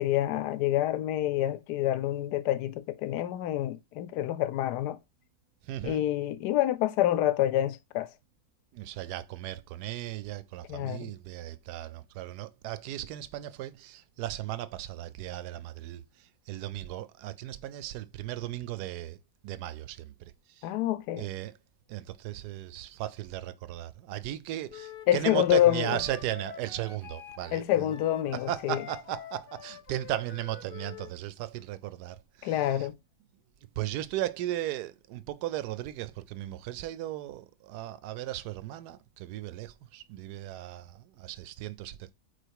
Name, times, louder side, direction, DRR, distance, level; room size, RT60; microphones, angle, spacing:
voice 1, 0.0-5.0 5.8-8.1 10.7-11.1 20.6-21.3 25.1-26.0 27.5-28.8 32.4-33.0, left 13 dB, 85° left, 1.2 m, -27 dB
voice 2, 5.6-6.0 8.7-19.2 19.4-20.1 20.6-20.7 21.2-21.6 21.9-27.9 28.3-32.9 33.8-42.1, right 13 dB, 80° right, 1.1 m, -36 dB
Wind instrument woodwind instrument, 24.7-31.1, left 8 dB, 60° left, 0.5 m, -47 dB
5.0 x 4.4 x 4.5 m
omnidirectional pair, 1.7 m